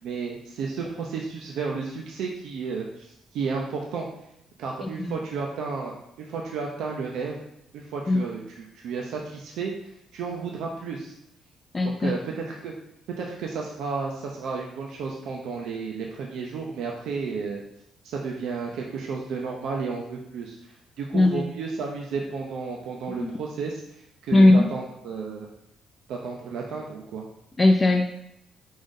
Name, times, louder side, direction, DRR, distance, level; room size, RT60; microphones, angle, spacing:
voice 1, 0.0-4.1 4.6-7.4 7.7-9.7 10.1-11.1 11.8-12.7 13.2-17.6 18.0-20.6 21.0-25.5 26.1-27.2, right 5 dB, 85° right, -1 dB, 0.5 m, -32 dB
voice 2, 4.8-5.1 8.1-8.2 11.7-12.2 21.1-21.4 23.2-23.3 24.3-24.7 27.6-28.0, left 2 dB, 25° left, 2 dB, 0.4 m, -18 dB
5.2 x 2.6 x 3.7 m, 0.78 s
cardioid pair, 90°, 0 cm